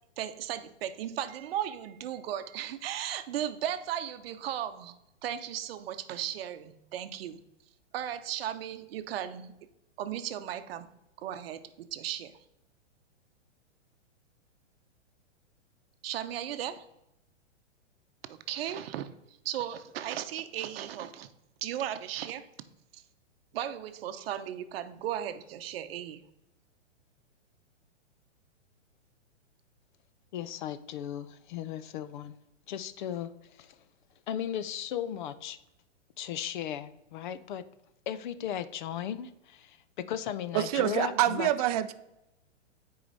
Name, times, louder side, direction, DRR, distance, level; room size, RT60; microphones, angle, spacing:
voice 1, 0.2-4.9 5.2-7.4 7.9-9.5 10.0-10.9 11.2-12.3 16.0-16.8 18.3-19.1 19.4-21.3 21.6-22.5 22.9-23.0 23.5-26.2, right 11 dB, 55° right, 0.8 m, -36 dB
voice 2, 30.3-32.4 32.7-33.8 34.3-35.6 36.2-37.6 38.1-41.5, left 10 dB, 40° left, 0.5 m, -36 dB
voice 3, 40.5-41.9, right 13 dB, 35° right, 0.4 m, -26 dB
9.2 x 4.8 x 4.0 m
hypercardioid pair, 145°, 36 cm